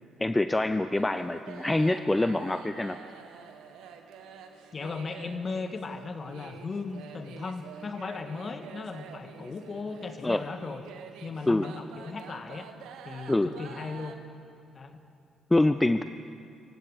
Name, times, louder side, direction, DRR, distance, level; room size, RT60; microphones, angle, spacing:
voice 1, 0.2-3.0 10.2-10.4 11.5-11.6 13.3-13.5 15.5-16.0, left 2 dB, 15° left, 10 dB, 0.7 m, -25 dB
sound 1, 1.0-14.2, right 7 dB, 75° right, 1.5 m, -47 dB
voice 2, 4.7-10.8 11.2-12.7 13.0-14.2 14.7-15.0, left 4 dB, 45° left, 8 dB, 1.8 m, -37 dB
26.0 x 16.5 x 6.6 m, 2.6 s
hypercardioid pair, 50°, 0 cm